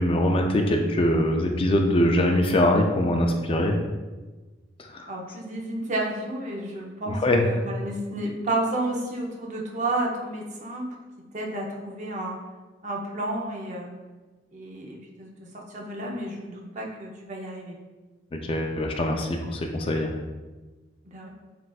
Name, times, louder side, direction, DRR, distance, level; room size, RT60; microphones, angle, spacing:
voice 1, 0.0-3.8 4.8-5.1 7.1-7.4 18.3-20.1, left 1 dB, 30° left, 3 dB, 0.4 m, -23 dB
voice 2, 5.1-11.0 11.3-12.4 12.8-13.9 14.5-15.3 15.5-17.8 21.0-21.3, right 1 dB, 45° right, -1 dB, 0.7 m, -31 dB
7.4 x 2.5 x 2.3 m, 1.2 s
head